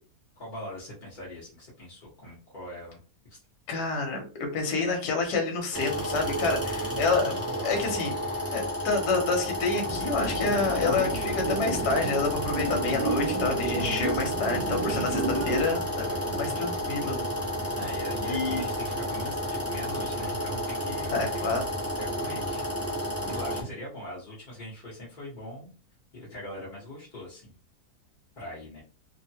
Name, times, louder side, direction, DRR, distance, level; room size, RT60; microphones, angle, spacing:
voice 1, 0.4-3.0 3.3-3.4 6.8-7.8 14.8-15.3 16.1-16.4 17.8-21.6 22.0-25.7 26.1-27.5 28.4-28.8, left 1 dB, 35° left, -6 dB, 0.8 m, -41 dB
voice 2, 3.7-4.3 4.5-7.3 7.6-8.1 8.5-17.3 18.3-18.6 21.1-21.6 23.3-23.4, left 4 dB, 70° left, 2 dB, 1.3 m, -28 dB
sound 1, 5.7-23.6, equal, 25° right, 0.3 m, -31 dB
sound 2, 9.9-15.6, right 3 dB, 75° right, 1.1 m, -32 dB
3.1 x 2.1 x 2.7 m, 0.36 s
omnidirectional pair, 1.9 m